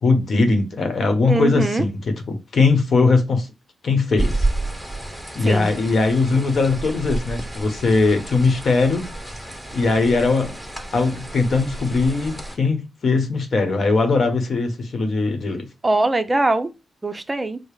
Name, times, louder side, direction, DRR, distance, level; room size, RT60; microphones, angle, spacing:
voice 1, 0.0-3.5 3.8-4.5 5.3-9.1 9.7-10.6 10.9-15.7, left 3 dB, 60° left, 1.0 m, -20 dB
voice 2, 1.3-1.8 5.4-5.7 15.8-16.7 17.0-17.6, right 2 dB, 20° right, 0.6 m, -21 dB
sound 1, 4.2-12.6, right 2 dB, ahead, 1.6 m, -30 dB
4.9 x 2.1 x 4.8 m
cardioid pair, 80°, 0 cm